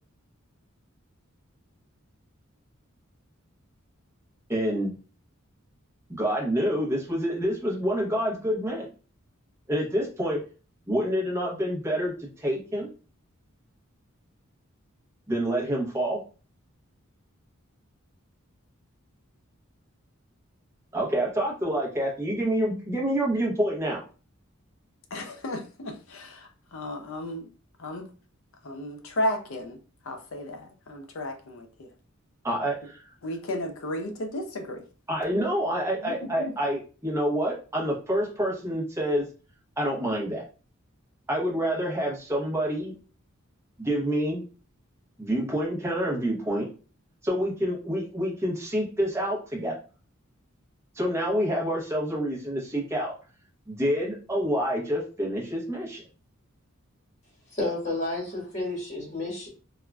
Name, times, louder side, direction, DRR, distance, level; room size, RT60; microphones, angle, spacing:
voice 1, 4.5-4.9 6.1-8.9 9.7-10.4 10.9-12.9 15.3-16.2 20.9-24.0 32.4-33.0 35.1-39.3 39.8-40.4 41.3-42.9 43.8-44.4 45.2-46.7 47.2-49.8 51.0-53.1 53.7-56.1, equal, 15° right, 0.8 m, -27 dB
voice 2, 25.1-27.5 27.8-28.1 28.6-29.8 30.0-31.9 33.2-34.9 36.0-36.5, left 1 dB, 65° left, 0.6 m, -34 dB
voice 3, 57.5-59.5, left 2 dB, 35° left, 1.5 m, -31 dB
3.5 x 2.4 x 2.2 m
head